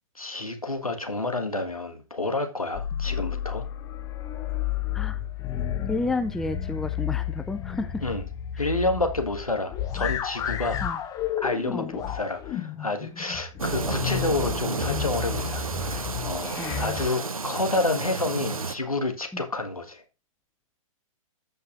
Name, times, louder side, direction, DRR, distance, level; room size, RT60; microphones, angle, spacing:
voice 1, 0.1-3.7 8.0-8.2 8.6-10.8 11.4-20.0, left 2 dB, 90° left, 1.6 m, -29 dB
sound 1, 2.7-17.1, left 9 dB, 20° left, 0.9 m, -32 dB
voice 2, 5.9-8.0 8.5-8.7 10.8-11.0 11.7-11.9 16.6-16.8 19.3-19.4, left 2 dB, ahead, 0.4 m, -31 dB
sound 2, 13.6-18.7, right 4 dB, 80° right, 0.8 m, -31 dB
14.0 x 5.5 x 2.5 m
figure-of-eight pair, 115°, 18 cm